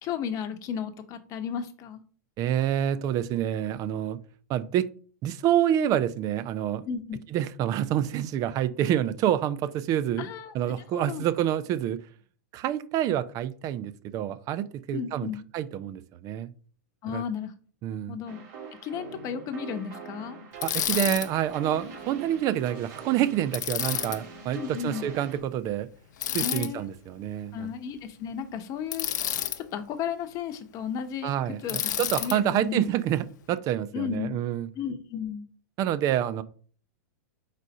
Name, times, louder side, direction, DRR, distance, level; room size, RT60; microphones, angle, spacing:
voice 1, 0.0-2.0 6.9-7.2 10.2-10.5 10.9-11.2 14.9-15.4 17.0-17.5 18.1-18.4 18.8-20.4 24.5-25.1 26.4-26.9 27.5-29.1 29.6-31.3 31.6-31.8 32.2-32.9 33.9-34.4 34.7-35.5, left 7 dB, 35° left, 0.9 m, -34 dB
voice 2, 2.4-4.2 4.5-4.9 5.2-6.9 7.3-12.0 12.5-16.5 17.1-17.2 17.8-18.2 20.6-25.9 26.3-27.7 31.2-34.7 35.8-36.4, right 11 dB, 35° right, 0.5 m, -27 dB
sound 1, 18.3-25.4, right 5 dB, 70° right, 2.1 m, -43 dB
Bicycle, 20.6-21.3 23.5-24.2 26.2-26.7 28.9-29.6 31.7-32.4, left 10 dB, 75° left, 0.6 m, -29 dB
4.8 x 4.1 x 5.3 m
hypercardioid pair, 120°, 10 cm